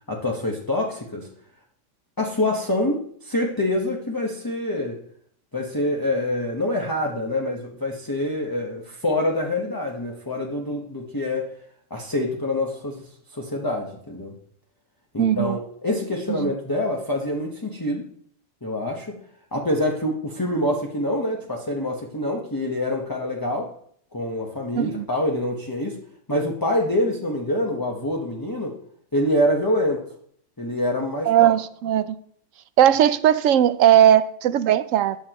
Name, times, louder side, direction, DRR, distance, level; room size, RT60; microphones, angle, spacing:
voice 1, 0.1-1.3 2.2-5.0 5.5-11.5 11.9-13.0 13.3-14.3 15.1-18.1 18.6-19.2 19.5-23.7 24.1-26.0 26.3-28.7 29.1-30.0 30.6-31.5, left 1 dB, 15° left, 1.2 m, -26 dB
voice 2, 15.2-15.6 16.4-16.5 24.8-25.1 31.3-32.2 32.8-35.2, right 11 dB, 85° right, 1.0 m, -18 dB
14.5 x 9.6 x 3.0 m
omnidirectional pair, 1.3 m